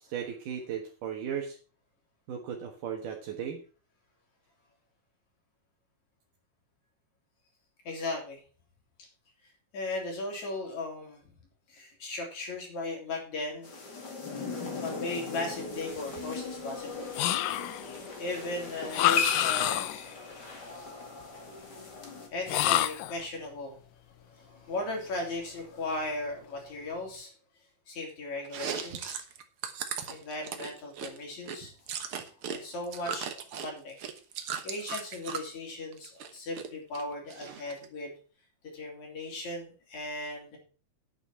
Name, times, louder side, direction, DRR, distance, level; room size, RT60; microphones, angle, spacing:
voice 1, 0.0-1.6 2.3-3.6, right 8 dB, 75° right, 0 dB, 3.0 m, -36 dB
voice 2, 7.8-8.4 9.7-11.2 11.7-14.0 14.8-17.1 18.2-20.0 22.3-23.8 24.2-27.3 27.9-29.2 30.1-31.7 32.1-34.0 34.6-38.1 38.7-40.6, left 2 dB, 60° left, 1 dB, 4.7 m, -37 dB
sound 1, 13.6-22.3, left 4 dB, 35° left, 2.4 m, -38 dB
sound 2, 17.1-17.9 18.9-20.1 22.5-23.2, left 14 dB, 85° left, 2.3 m, -27 dB
Chewing mastication, 28.4-32.6 32.8-35.5 35.9-36.7 36.9-37.9, right 7 dB, 55° right, 1.6 m, -37 dB
9.2 x 9.1 x 5.6 m, 0.38 s
omnidirectional pair, 3.8 m